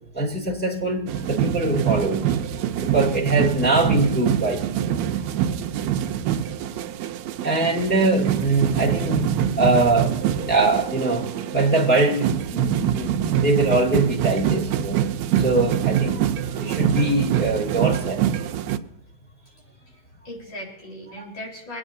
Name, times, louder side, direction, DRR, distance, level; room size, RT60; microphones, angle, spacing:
voice 1, 0.1-2.3 2.8-4.6 7.4-9.3 9.6-10.2 10.5-15.0 15.3-18.3 21.2-21.3, right 2 dB, 5° left, -4 dB, 1.4 m, -22 dB
sound 1, 1.1-18.8, right 10 dB, 80° right, 1.6 m, -25 dB
voice 2, 19.5-20.0 20.2-21.8, left 1 dB, 55° left, -2 dB, 5.1 m, -38 dB
26.0 x 9.2 x 2.7 m, 0.86 s
omnidirectional pair, 3.8 m